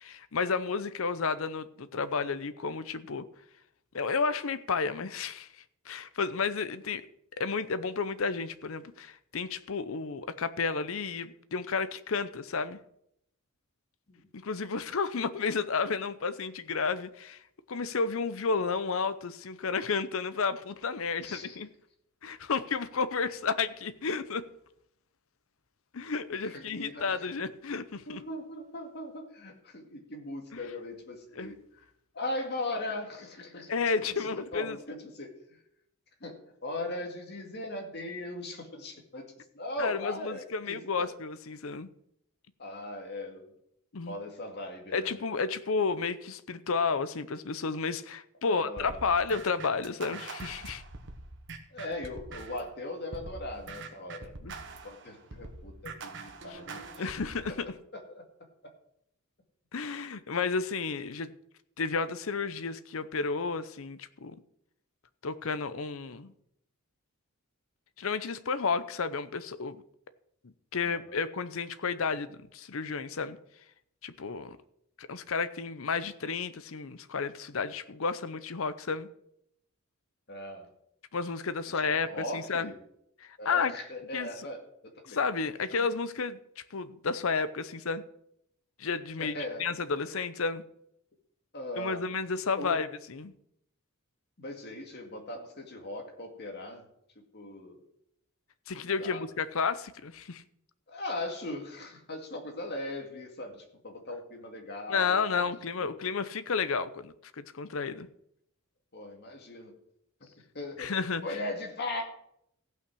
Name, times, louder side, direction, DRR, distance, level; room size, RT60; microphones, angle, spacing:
voice 1, 0.0-3.2 3.9-5.5 5.9-7.0 7.4-12.8 14.3-17.4 17.7-21.7 22.2-24.4 25.9-28.2 30.5-30.6 31.4-31.5 33.7-34.8 39.8-41.9 43.9-44.1 44.9-50.8 54.4-54.5 56.5-56.6 57.0-57.7 59.7-61.3 61.8-64.3 65.2-66.3 68.0-69.8 70.4-73.4 74.0-74.6 75.0-79.1 81.1-82.1 82.3-82.7 83.2-83.7 84.1-84.3 85.1-88.0 88.8-89.3 89.6-90.6 91.8-93.3 98.7-100.4 104.9-108.1 110.8-111.4, left 5 dB, 65° left, 0.7 m, -32 dB
voice 2, 21.2-21.6 26.4-27.2 28.1-31.8 32.1-33.7 34.2-35.6 36.2-41.1 42.6-43.5 44.1-45.2 48.4-49.0 51.7-54.3 54.8-57.1 57.5-57.6 57.9-58.2 70.8-71.2 80.3-80.7 81.6-82.8 83.4-85.2 85.6-85.9 89.2-89.7 91.5-92.1 92.6-92.8 94.4-96.8 97.2-97.9 99.0-99.3 100.9-105.5 105.8-106.2 108.9-109.8 110.2-112.0, left 1 dB, 50° left, 2.1 m, -39 dB
sound 1, 48.8-52.7 53.1-57.5, right 3 dB, 55° right, 1.3 m, -44 dB
15.5 x 5.9 x 6.2 m
head